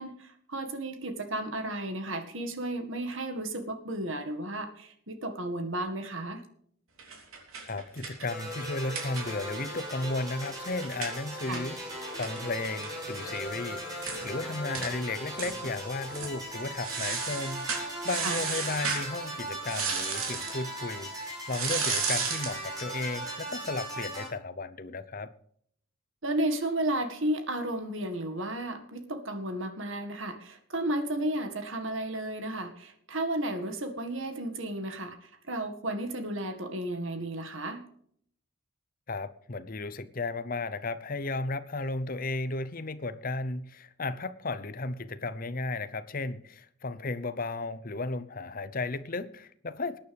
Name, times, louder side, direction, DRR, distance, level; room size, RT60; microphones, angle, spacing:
voice 1, 0.0-6.4 11.5-11.7 18.2-18.4 26.2-37.9, right 1 dB, 65° right, 1.9 m, -33 dB
sound 1, 7.0-9.6 9.9-10.0 10.3-13.4 13.7-13.8 14.0-14.3 14.7-14.9 15.4-15.8 16.1-16.3 16.8-19.1 19.6-20.6 21.5-22.6, right 5 dB, 80° right, 3.5 m, -34 dB
voice 2, 7.7-11.8 12.1-25.3 39.1-50.0, left 3 dB, 40° left, 0.8 m, -34 dB
sound 2, 8.3-24.3, right 1 dB, 15° right, 5.7 m, -38 dB
21.0 x 9.5 x 3.5 m
head